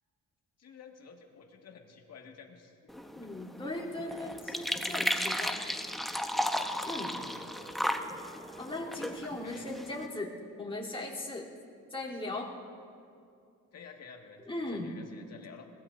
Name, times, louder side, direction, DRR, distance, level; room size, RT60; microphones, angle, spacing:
voice 1, 0.6-2.8 3.2-3.3 7.2-7.4 9.4-9.8 13.7-15.7, left 6 dB, 55° left, 2 dB, 1.9 m, -52 dB
sound 1, 2.9-10.1, equal, ahead, 0.8 m, -35 dB
voice 2, 3.1-5.6 6.8-7.1 8.6-11.5 11.9-12.5 14.5-14.9, left 2 dB, 20° left, -5 dB, 3.2 m, -38 dB
sound 2, 7.1-13.2, equal, 20° right, 3.3 m, -55 dB
21.5 x 18.0 x 2.6 m, 2.5 s
cardioid pair, 90°, 30 cm